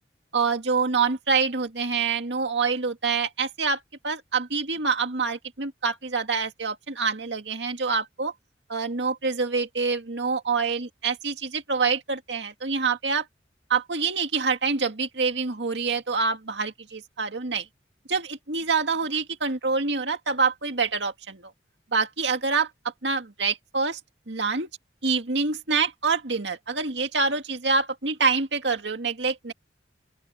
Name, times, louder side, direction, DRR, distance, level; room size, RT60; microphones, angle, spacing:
voice 1, 0.3-8.3 8.7-13.3 13.7-17.7 18.1-21.5 21.9-24.0 24.3-24.7 25.0-29.5, right 4 dB, 85° right, 2.1 m, -26 dB
open air
head